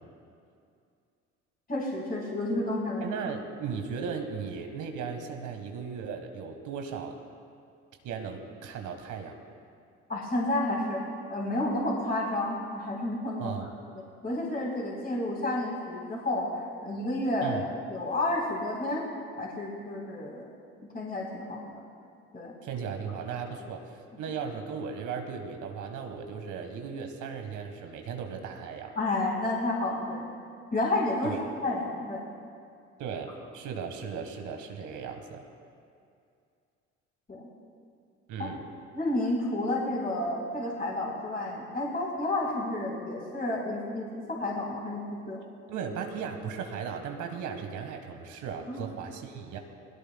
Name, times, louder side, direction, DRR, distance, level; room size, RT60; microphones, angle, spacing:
voice 1, 1.7-3.0 10.1-11.0 11.3-13.5 14.2-17.6 17.9-19.0 19.4-20.5 20.8-21.8 22.3-22.5 29.0-30.3 30.7-31.3 31.6-32.2 37.3-37.5 38.4-38.5 38.9-45.4 48.7-48.8, left 1 dB, 25° left, -3 dB, 3.9 m, -30 dB
voice 2, 3.0-7.2 8.0-9.4 13.4-13.7 17.4-17.6 22.6-29.0 31.2-31.4 33.0-35.4 38.3-38.7 45.7-49.6, right 6 dB, 60° right, 4 dB, 1.5 m, -36 dB
20.5 x 16.0 x 2.3 m, 2.4 s
hypercardioid pair, 60°, 34 cm